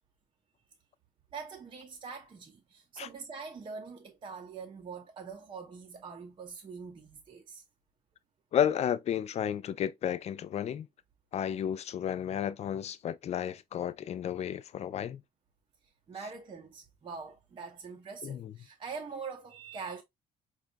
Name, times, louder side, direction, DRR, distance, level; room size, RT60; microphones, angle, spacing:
voice 1, 1.3-7.6 16.1-20.0, right 5 dB, 30° right, 0.6 m, -43 dB
voice 2, 8.5-10.9 11.3-15.2 18.2-18.5, left 9 dB, 40° left, 0.4 m, -32 dB
4.9 x 2.3 x 2.5 m
cardioid pair, 110°, 17 cm